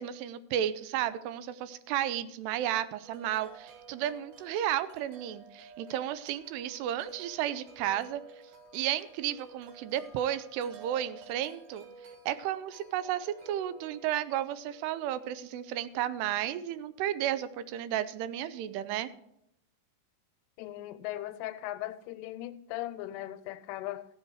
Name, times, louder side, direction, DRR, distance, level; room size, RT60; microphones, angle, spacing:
voice 1, 0.0-8.2 8.7-11.9 12.3-19.1, right 11 dB, 85° right, 14 dB, 2.7 m, -33 dB
Wind chime, 3.0-17.0, right 4 dB, 65° right, 3.5 m, -54 dB
voice 2, 20.6-24.1, left 14 dB, 85° left, 11 dB, 2.6 m, -38 dB
15.5 x 7.4 x 4.7 m, 0.77 s
omnidirectional pair, 4.8 m